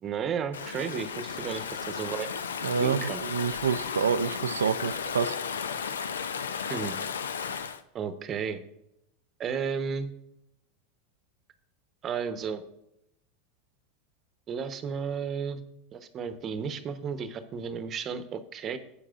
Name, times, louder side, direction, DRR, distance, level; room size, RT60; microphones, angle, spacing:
voice 1, 0.0-2.3 2.8-3.2 6.7-6.9 7.9-8.6 9.4-10.1 12.0-12.6 14.5-15.6 15.9-18.8, right 6 dB, 35° right, 10 dB, 0.9 m, -33 dB
Stream / Ocean, 0.5-7.8, left 6 dB, 85° left, 0.5 m, -34 dB
voice 2, 2.6-5.3, right 6 dB, 90° right, 14 dB, 0.4 m, -28 dB
12.5 x 8.4 x 2.4 m, 0.80 s
hypercardioid pair, 95°, 0 cm